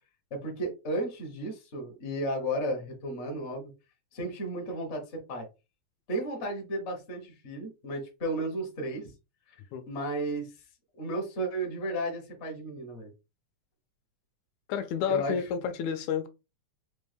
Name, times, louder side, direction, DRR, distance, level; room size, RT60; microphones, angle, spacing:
voice 1, 0.3-3.7 4.1-5.5 6.1-9.1 9.9-10.5 11.0-13.1 15.1-15.4, right 1 dB, 60° left, 0.7 m, -33 dB
voice 2, 14.7-16.3, left 8 dB, 85° left, 2.0 m, -30 dB
5.1 x 2.1 x 3.3 m
omnidirectional pair, 3.3 m